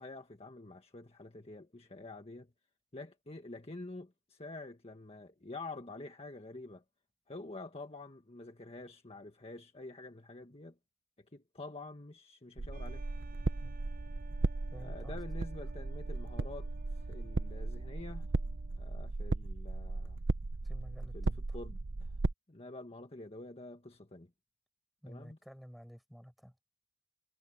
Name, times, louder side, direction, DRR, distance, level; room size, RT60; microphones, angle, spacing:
voice 1, 0.0-2.5 2.9-6.8 7.3-10.8 11.2-13.0 14.8-18.3 18.8-20.2 21.1-22.1 22.5-24.3 25.1-25.4, left 2 dB, 30° left, 1.6 m, -48 dB
sound 1, 12.6-22.3, right 3 dB, 65° right, 0.7 m, -36 dB
sound 2, 12.7-19.0, right 2 dB, 45° right, 7.1 m, -57 dB
voice 2, 14.7-15.2 20.6-21.6 25.0-26.5, equal, ahead, 7.9 m, -52 dB
head